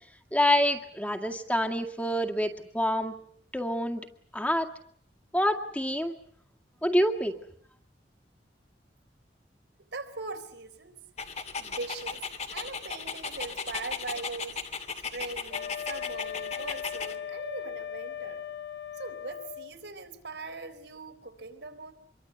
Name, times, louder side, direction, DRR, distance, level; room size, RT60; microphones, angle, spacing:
voice 1, 0.3-3.1 3.5-4.0 4.3-4.7 5.3-6.2 6.8-7.3, equal, 10° left, 4 dB, 2.1 m, -27 dB
voice 2, 9.9-11.0 11.6-12.2 12.5-14.6 15.1-18.4 18.9-21.9, right 3 dB, 85° right, 6 dB, 4.0 m, -40 dB
Dog, 11.2-17.2, left 5 dB, 40° left, 2.3 m, -36 dB
Wind instrument woodwind instrument, 15.5-19.8, left 9 dB, 80° left, 2.2 m, -38 dB
26.5 x 23.0 x 8.2 m, 0.65 s
head